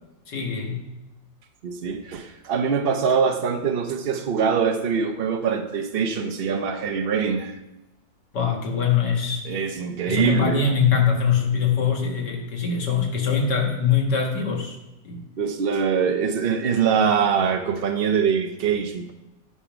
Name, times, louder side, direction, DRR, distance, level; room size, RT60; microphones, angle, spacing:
voice 1, 0.3-0.9 8.3-9.4 10.1-14.8 15.0-15.2, left 6 dB, 70° left, 1 dB, 2.1 m, -23 dB
voice 2, 1.6-7.5 9.4-10.7 15.4-19.1, right 6 dB, 70° right, 4 dB, 0.5 m, -23 dB
9.6 x 5.6 x 5.9 m, 0.99 s
omnidirectional pair, 1.9 m